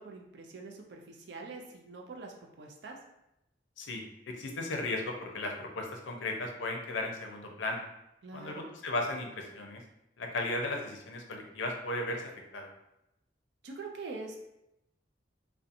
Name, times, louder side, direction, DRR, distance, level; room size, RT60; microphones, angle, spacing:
voice 1, 0.0-3.0 8.2-8.7 13.6-14.4, right 3 dB, 65° right, 1 dB, 0.4 m, -44 dB
voice 2, 3.8-7.8 8.3-9.8 10.2-12.2 12.5-12.7, left 2 dB, 85° left, 2 dB, 0.5 m, -36 dB
2.7 x 2.1 x 2.5 m, 0.87 s
head